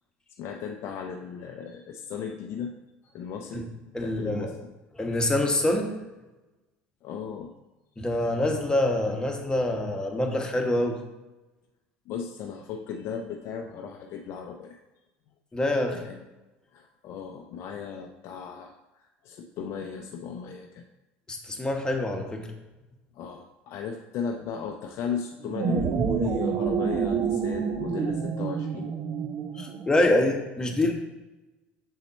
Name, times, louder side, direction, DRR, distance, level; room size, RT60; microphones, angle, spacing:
voice 1, 0.4-2.8 3.0-3.7 4.0-4.6 7.0-7.5 12.1-14.8 15.9-16.2 16.7-20.8 23.2-28.9, left 6 dB, 55° left, 3 dB, 0.5 m, -36 dB
voice 2, 3.9-4.5 4.9-5.9 8.0-11.0 15.5-16.0 21.3-22.5 29.6-30.9, left 1 dB, 15° left, 3 dB, 1.2 m, -25 dB
sound 1, 25.4-30.0, right 6 dB, 45° right, 0.7 m, -28 dB
6.5 x 4.2 x 4.1 m, 1.1 s
supercardioid pair, 90°, 5 cm